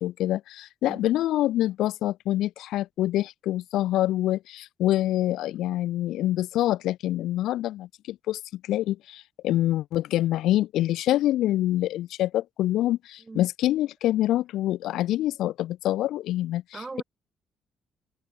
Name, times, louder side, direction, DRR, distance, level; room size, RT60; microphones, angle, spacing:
voice 1, 0.0-8.4 8.7-16.6, left 14 dB, 85° left, 0.6 m, -26 dB
voice 2, 16.7-17.0, right 3 dB, 25° right, 7.3 m, -39 dB
open air
cardioid pair, 90°, 0 cm